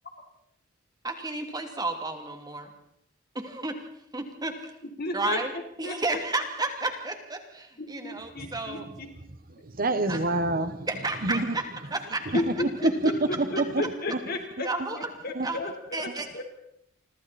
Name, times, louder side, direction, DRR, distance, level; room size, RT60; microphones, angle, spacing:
voice 1, 1.0-2.7 3.3-3.9 4.1-4.7 5.1-5.5 5.8-8.8 10.1-10.2 10.9-12.4 12.8-12.9 14.6-15.1 15.4-15.6 15.9-16.4, right 2 dB, 20° right, 2.9 m, -32 dB
voice 2, 5.0-5.4 5.8-6.0 7.8-9.1 12.3-12.7 13.0-16.4, left 2 dB, 50° left, 4.2 m, -33 dB
voice 3, 9.6-10.9 11.2-11.5 12.5-12.6 12.8-13.1 13.4-13.7 14.1-14.2 15.3-15.5, right 2 dB, 45° right, 1.4 m, -26 dB
29.5 x 25.0 x 4.3 m
head